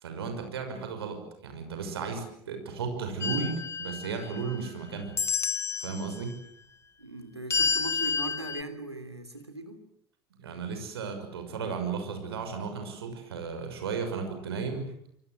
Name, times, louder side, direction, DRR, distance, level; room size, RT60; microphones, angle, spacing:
voice 1, 0.0-5.2 5.8-6.3 10.3-14.9, right 5 dB, 70° right, 6 dB, 6.1 m, -34 dB
sound 1, 3.2-4.7 5.2-6.0 7.5-8.6, left 5 dB, 20° left, 1.6 m, -30 dB
voice 2, 7.0-9.8, right 2 dB, 90° right, 7 dB, 3.4 m, -39 dB
27.5 x 24.5 x 7.9 m, 0.68 s
figure-of-eight pair, 70°, 13 cm